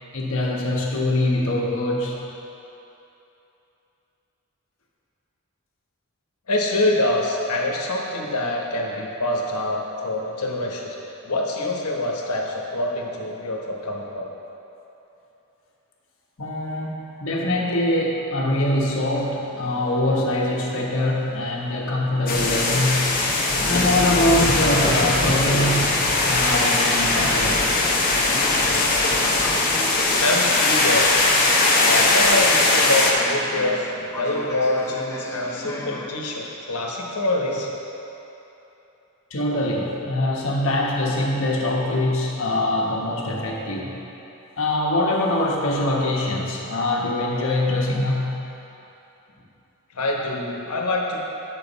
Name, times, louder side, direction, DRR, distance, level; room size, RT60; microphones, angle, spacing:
voice 1, 0.1-2.2 12.9-13.0 16.4-23.2 23.6-26.0 26.3-27.6 39.3-44.0 44.6-48.5, left 1 dB, 60° left, -2 dB, 1.2 m, -23 dB
voice 2, 6.5-10.9 11.2-14.3 30.2-31.1 31.8-37.7 49.9-51.2, left 2 dB, 90° left, -1 dB, 1.2 m, -25 dB
sound 1, 18.5-36.1, left 1 dB, 10° left, 0.6 m, -37 dB
sound 2, 22.3-33.1, left 2 dB, 40° left, 1.0 m, -20 dB
10.0 x 6.4 x 4.1 m, 3.0 s
head